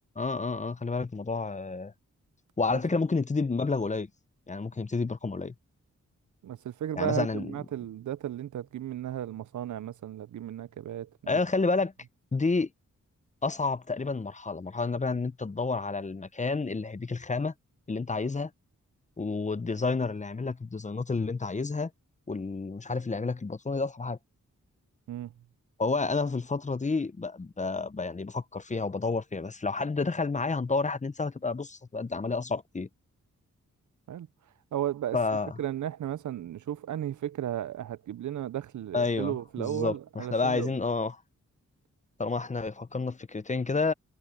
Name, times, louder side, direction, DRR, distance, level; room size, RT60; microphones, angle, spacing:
voice 1, 0.2-1.9 2.6-4.1 4.5-5.5 7.0-7.5 11.3-11.9 12.3-12.7 13.4-17.5 17.9-18.5 19.2-21.9 22.3-24.2 25.8-32.9 35.1-35.6 38.9-41.2 42.2-43.9, left 3 dB, 25° left, 0.7 m, -30 dB
voice 2, 6.4-11.4 25.1-25.3 34.1-34.3 34.7-35.2 35.6-40.7, right 11 dB, 75° right, 0.5 m, -34 dB
wide cardioid pair, 85°, 30 cm